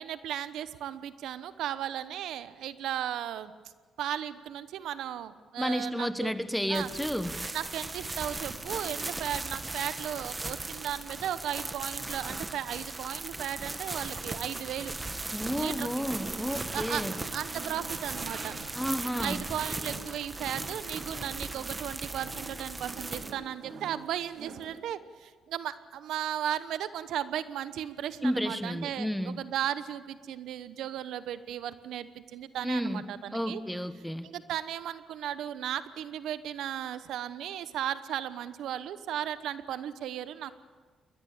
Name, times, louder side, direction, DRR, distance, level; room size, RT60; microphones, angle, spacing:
voice 1, 0.0-3.5 4.0-6.4 6.7-6.9 7.5-14.9 15.6-15.9 16.7-17.0 17.3-18.5 19.2-33.6 34.2-40.5, right 10 dB, 80° right, 13 dB, 1.0 m, -36 dB
voice 2, 5.6-7.3 15.3-17.1 18.7-19.4 28.2-29.4 32.6-33.0 33.3-34.3, equal, ahead, 11 dB, 1.4 m, -31 dB
sound 1, 6.7-23.3, right 2 dB, 20° right, 1.7 m, -38 dB
sound 2, 9.4-24.8, right 4 dB, 65° right, 2.5 m, -47 dB
21.5 x 19.5 x 8.8 m, 1.5 s
cardioid pair, 90°, 0 cm